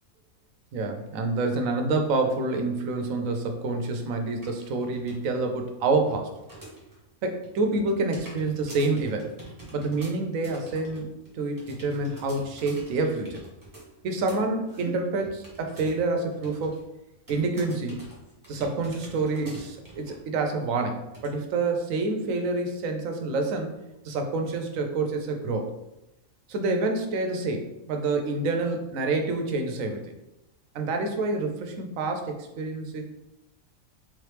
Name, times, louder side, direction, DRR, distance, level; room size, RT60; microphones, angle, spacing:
voice 1, 0.7-6.3 7.2-9.3 9.7-11.1 11.3-13.4 14.0-16.8 17.3-18.0 18.5-23.7 24.0-25.7 26.5-30.1 30.7-33.0, right 3 dB, 75° right, 4 dB, 1.0 m, -27 dB
sound 1, 4.4-5.3 5.6-7.0 7.3-16.1 16.3-16.8 17.3-20.3 20.6-20.7 21.1-21.3, right 2 dB, 15° right, 0.9 m, -46 dB
3.7 x 3.1 x 3.2 m, 0.93 s
omnidirectional pair, 1.4 m